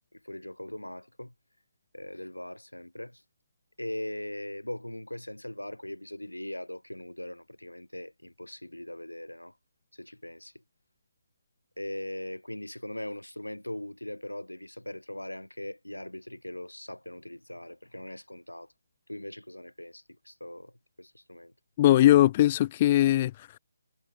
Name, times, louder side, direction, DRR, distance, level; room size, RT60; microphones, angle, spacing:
voice 1, 0.1-1.3 1.9-3.2 3.8-9.5 9.9-10.5 11.8-18.7 19.1-20.7 21.0-21.5, left 1 dB, 85° left, 7.7 m, -40 dB
voice 2, 21.8-23.6, left 14 dB, 25° left, 0.4 m, -21 dB
figure-of-eight pair, 145°, 0 cm